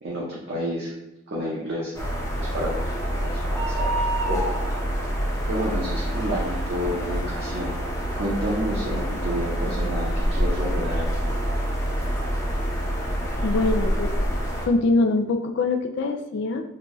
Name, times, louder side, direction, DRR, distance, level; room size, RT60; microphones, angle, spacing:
voice 1, 0.0-0.9 1.3-1.9 2.4-3.9 4.3-4.5 5.4-7.7 8.1-11.1, equal, 55° right, -6 dB, 0.7 m, -30 dB
sound 1, 1.9-14.7, equal, 15° left, 0.7 m, -26 dB
voice 2, 13.4-14.1 14.7-16.6, left 3 dB, 55° left, 5 dB, 0.3 m, -23 dB
3.9 x 2.3 x 3.0 m, 0.93 s
head